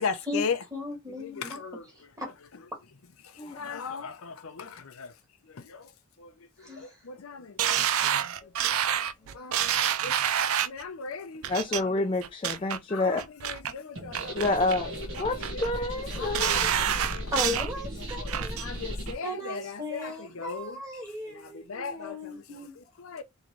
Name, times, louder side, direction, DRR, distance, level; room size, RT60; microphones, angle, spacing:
voice 1, 0.0-0.6 1.2-1.9 3.5-5.1 5.5-5.9 6.2-6.3 6.6-7.8 8.2-8.3 9.3-9.6 10.0-10.2 10.6-11.5 11.7-11.9 12.9-14.4 14.8-14.9 15.1-15.6 16.1-17.3 18.2-20.8 21.3-23.2, left 5 dB, 85° left, 0.7 m, -38 dB
voice 2, 0.7-1.6 1.9-2.3 6.6-7.0 17.3-18.7 19.2-22.8, left 1 dB, 15° right, 1.8 m, -36 dB
sound 1, 7.6-10.8 11.4-11.8 12.2-12.8 13.2-13.7 14.1-14.8 15.1-15.7 16.1-17.7 18.1-18.7 19.1-19.2, right 9 dB, 90° right, 0.4 m, -28 dB
voice 3, 11.5-13.2 14.3-14.9 15.2-16.7, left 2 dB, 25° left, 0.5 m, -28 dB
sound 2, 14.0-19.1, equal, 65° right, 1.3 m, -36 dB
3.7 x 3.2 x 3.1 m
head